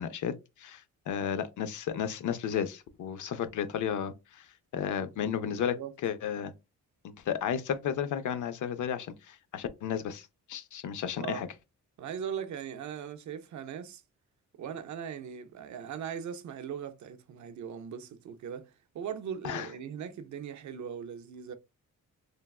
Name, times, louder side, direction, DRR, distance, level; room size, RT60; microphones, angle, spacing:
voice 1, 0.0-4.5 4.7-5.8 6.0-6.5 7.0-11.5 19.4-19.7, left 8 dB, 70° left, 0.5 m, -33 dB
voice 2, 4.9-5.2 5.4-5.9 11.2-11.5 12.0-14.0 14.6-21.5, right 8 dB, 65° right, 0.5 m, -40 dB
3.3 x 2.2 x 2.3 m
cardioid pair, 120°, 32 cm